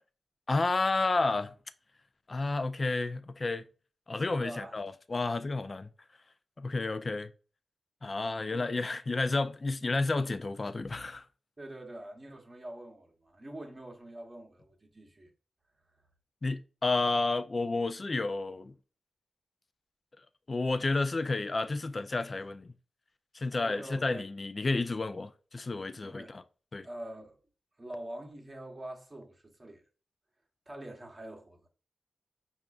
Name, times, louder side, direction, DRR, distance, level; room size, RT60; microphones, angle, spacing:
voice 1, 0.5-1.5 2.3-3.6 4.1-5.9 6.6-7.3 8.0-11.2 16.4-18.7 20.5-22.7 23.3-26.4 26.7-26.9, left 3 dB, 45° left, 0.3 m, -31 dB
voice 2, 4.3-4.8 11.6-15.3 23.6-24.3 26.0-26.4 26.8-27.4 27.8-29.8 30.7-31.7, right 1 dB, 30° right, 0.9 m, -45 dB
5.1 x 2.4 x 2.3 m
cardioid pair, 55°, 0 cm